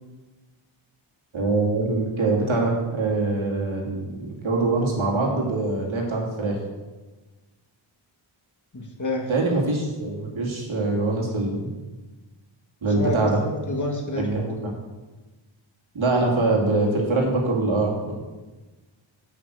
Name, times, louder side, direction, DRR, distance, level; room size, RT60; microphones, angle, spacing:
voice 1, 1.3-6.6 9.3-11.7 12.8-13.4 14.2-14.7 15.9-18.1, right 2 dB, 70° right, -2 dB, 2.7 m, -24 dB
voice 2, 8.7-9.3 9.5-9.6 12.8-14.5, left 2 dB, 35° left, 0 dB, 2.1 m, -29 dB
9.3 x 6.0 x 6.5 m, 1.2 s
cardioid pair, 65°, 49 cm